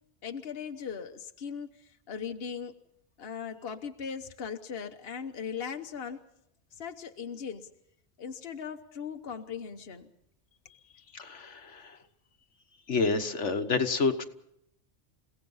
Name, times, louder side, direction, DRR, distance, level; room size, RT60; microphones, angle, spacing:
voice 1, 0.2-2.7 3.2-6.2 6.7-7.7 8.2-10.1, left 6 dB, 55° left, 5 dB, 1.3 m, -39 dB
voice 2, 11.1-12.0 12.9-14.2, left 4 dB, 75° left, 7 dB, 1.6 m, -29 dB
30.0 x 17.0 x 5.6 m, 0.76 s
omnidirectional pair, 1.2 m